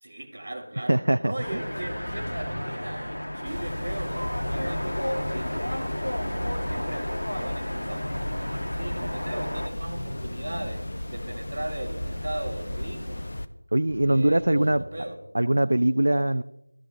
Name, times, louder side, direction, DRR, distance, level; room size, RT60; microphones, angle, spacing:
voice 1, 0.0-5.9 6.7-10.8 11.1-13.2 14.0-15.2, right 1 dB, 30° right, -6 dB, 1.5 m, -38 dB
voice 2, 0.9-1.6 13.7-14.8 15.3-16.4, right 1 dB, 55° right, 9 dB, 0.4 m, -22 dB
sound 1, 1.4-9.7, equal, 70° left, 1.4 m, -32 dB
sound 2, 1.9-5.4 5.7-7.4 7.7-13.3 13.8-15.1, equal, 15° left, 5.4 m, -41 dB
sound 3, 3.5-13.5, left 1 dB, 45° left, 0.7 m, -35 dB
18.5 x 12.5 x 2.6 m, 0.86 s
figure-of-eight pair, 170°, 0 cm